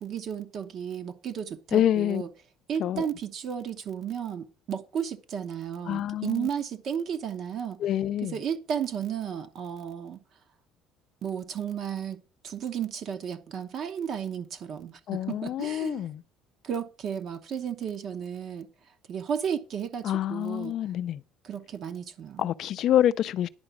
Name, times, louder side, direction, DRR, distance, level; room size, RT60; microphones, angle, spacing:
voice 1, 0.0-2.3 2.7-7.8 8.2-10.2 11.2-16.1 16.6-18.7 19.1-20.8 21.4-22.5, right 8 dB, 40° right, 0.9 m, -33 dB
voice 2, 1.7-2.2 2.8-3.1 5.9-6.5 7.8-8.4 15.1-16.2 20.0-21.2 22.4-23.5, left 11 dB, 45° left, 0.5 m, -26 dB
10.5 x 4.9 x 8.1 m
cardioid pair, 155°, 0 cm